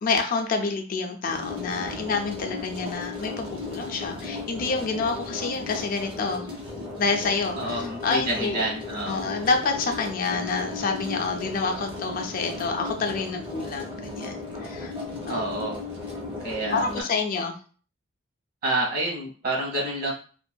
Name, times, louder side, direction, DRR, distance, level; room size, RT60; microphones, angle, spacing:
voice 1, 0.0-6.5 7.0-8.6 9.1-14.9 15.3-15.6 16.7-17.5, left 4 dB, 45° left, 4 dB, 0.3 m, -28 dB
sound 1, 1.2-17.0, left 3 dB, 25° right, 0.6 m, -36 dB
voice 2, 7.6-9.2 15.3-15.8 16.4-17.0 18.6-20.1, right 1 dB, 50° right, -2 dB, 1.1 m, -28 dB
2.6 x 2.3 x 2.2 m, 0.39 s
head